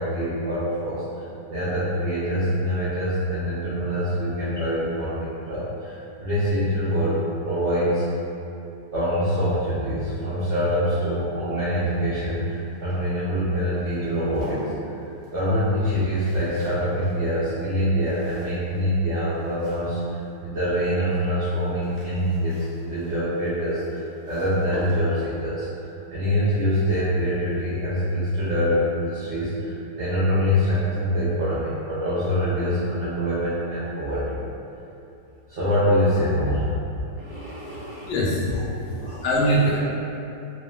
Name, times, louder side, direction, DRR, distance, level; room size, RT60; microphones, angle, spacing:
voice 1, 0.0-7.2 7.4-8.0 8.9-14.7 15.3-34.4 35.5-36.7 37.2-38.1 38.5-38.6 38.9-39.2, equal, 90° right, -12 dB, 0.6 m, -25 dB
sound 1, 11.5-20.4 21.5-25.4 27.0-27.3 27.6-27.7, right 1 dB, 60° right, 1.1 m, -44 dB
voice 2, 37.6-38.7 39.2-39.8, equal, 85° left, -5 dB, 1.3 m, -23 dB
3.3 x 2.2 x 2.2 m, 2.8 s
omnidirectional pair, 2.0 m